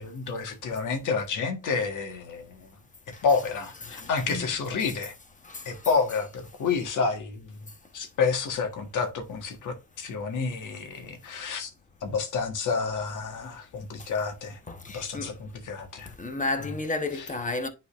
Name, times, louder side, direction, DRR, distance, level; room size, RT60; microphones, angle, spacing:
voice 1, 0.0-2.7 3.2-5.1 5.6-7.6 7.9-11.7 12.0-14.6 14.9-16.1 16.6-16.8 17.1-17.4, left 5 dB, 80° left, 1.5 m, -29 dB
voice 2, 3.9-4.5 5.5-5.8 14.0-14.1 14.7-15.3 16.1-17.7, left 3 dB, 25° left, 1.2 m, -33 dB
9.9 x 3.9 x 2.5 m
cardioid pair, 100°, 30 cm